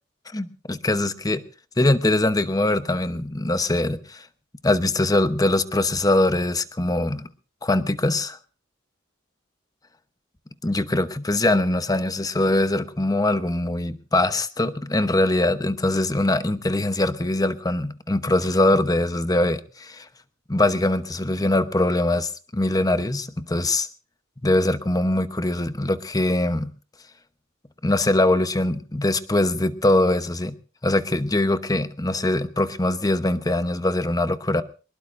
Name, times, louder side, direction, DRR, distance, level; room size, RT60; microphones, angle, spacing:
voice 1, 0.3-1.4 1.8-4.3 4.6-7.3 7.6-8.4 10.6-20.1 20.5-23.9 24.4-26.7 27.8-30.6 30.8-34.6, left 1 dB, 20° left, 0.9 m, -22 dB
23.5 x 20.5 x 2.6 m
head